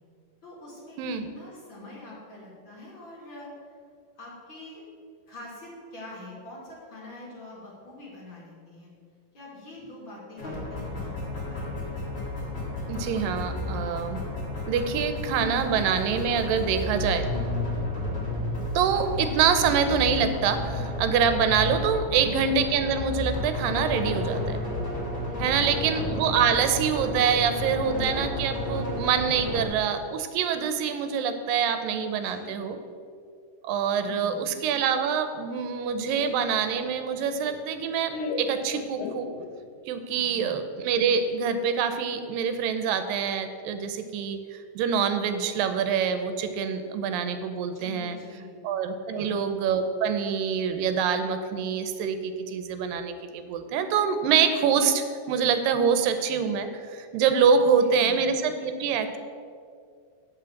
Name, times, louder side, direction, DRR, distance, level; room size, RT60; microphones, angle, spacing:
voice 1, 0.4-3.7 4.2-4.8 5.3-8.9 9.3-11.9 22.1-22.4 25.2-25.7 32.0-32.9 34.0-34.6 40.1-40.6 47.7-48.5 49.1-49.4 57.7-58.3, left 2 dB, 40° left, -5 dB, 2.5 m, -45 dB
voice 2, 1.0-1.3 12.9-14.2 14.7-17.3 18.8-24.6 25.4-32.8 33.6-39.3 39.9-48.2 48.6-59.2, right 7 dB, 90° right, 9 dB, 2.4 m, -25 dB
sound 1, 10.4-29.6, left 2 dB, 20° left, 2.5 m, -32 dB
Laughter, 36.2-39.8, left 4 dB, 75° left, 2.1 m, -36 dB
9.4 x 5.5 x 7.0 m, 2.3 s
omnidirectional pair, 3.9 m